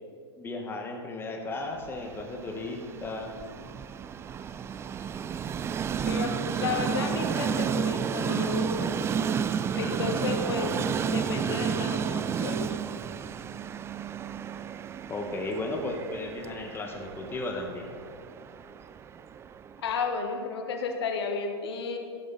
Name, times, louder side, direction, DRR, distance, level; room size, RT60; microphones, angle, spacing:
voice 1, 0.4-3.3 15.1-17.9, left 2 dB, 15° left, 2 dB, 1.6 m, -35 dB
Train, 1.8-19.9, right 7 dB, 20° right, 0.4 m, -32 dB
voice 2, 6.0-8.9 9.7-10.8 11.1-12.8 19.8-22.0, left 4 dB, 70° left, 4 dB, 1.5 m, -32 dB
15.0 x 11.0 x 4.1 m, 2.3 s
hypercardioid pair, 110°, 14 cm